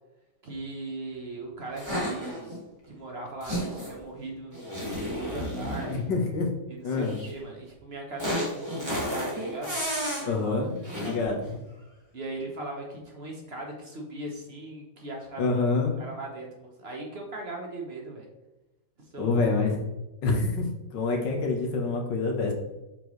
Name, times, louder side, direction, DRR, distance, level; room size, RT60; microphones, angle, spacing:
voice 1, 0.4-2.5 2.9-6.0 6.7-9.8 10.2-11.4 12.1-15.5 16.0-18.3 19.1-19.7, right 2 dB, 40° right, 0 dB, 1.1 m, -39 dB
sound 1, 1.8-2.6 3.4-4.0 4.5-6.0 7.0-7.3 8.2-10.3 10.8-11.2, equal, 15° right, 1.9 m, -32 dB
voice 2, 5.9-6.5 6.8-7.2 10.3-11.6 15.4-16.0 19.2-19.8 20.2-22.5, left 3 dB, 90° left, 1 dB, 1.9 m, -27 dB
7.6 x 4.5 x 3.1 m, 1.0 s
omnidirectional pair, 1.9 m